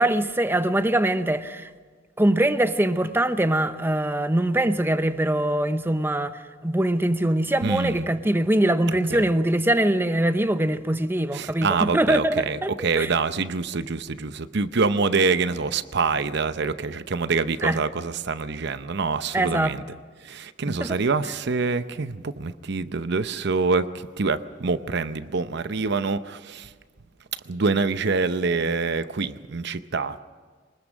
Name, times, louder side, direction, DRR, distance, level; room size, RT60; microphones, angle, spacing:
voice 1, 0.0-1.7 2.2-13.1 17.6-17.8 19.3-19.8 20.7-21.0, right 1 dB, 10° right, 0.8 m, -23 dB
voice 2, 7.6-8.0 9.1-9.3 11.3-19.8 20.2-23.9 24.2-26.7 27.5-30.2, right 4 dB, 65° right, 0.8 m, -25 dB
24.0 x 20.0 x 6.3 m
head